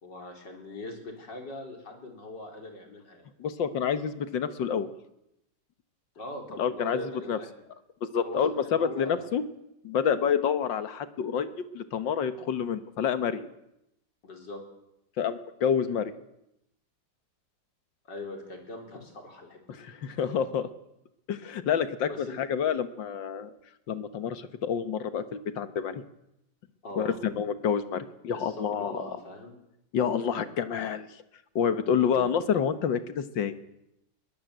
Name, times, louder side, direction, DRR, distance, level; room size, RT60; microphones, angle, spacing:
voice 1, 0.0-3.3 6.2-7.5 8.2-9.3 14.2-14.6 18.0-19.8 20.1-20.3 22.1-22.4 26.8-27.4 28.3-29.6 32.0-32.3, left 1 dB, 70° left, 3 dB, 4.6 m, -41 dB
voice 2, 3.4-4.9 6.6-7.4 8.0-9.4 9.8-11.5 11.7-13.5 15.2-16.1 19.7-20.7 21.3-23.5 23.9-26.0 27.0-29.0 29.9-31.1 31.6-33.5, left 7 dB, 85° left, 11 dB, 2.0 m, -28 dB
22.0 x 19.0 x 8.0 m, 0.83 s
omnidirectional pair, 2.0 m